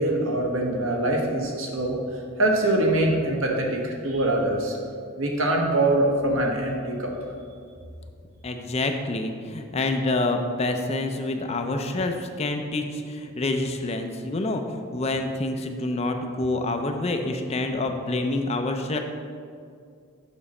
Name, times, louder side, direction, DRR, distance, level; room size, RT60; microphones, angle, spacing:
voice 1, 0.0-2.0 2.4-4.8 5.2-7.1, right 1 dB, 70° right, 0 dB, 1.2 m, -23 dB
voice 2, 8.4-19.0, left 2 dB, 30° left, 5 dB, 0.4 m, -27 dB
7.0 x 6.2 x 4.2 m, 2.3 s
head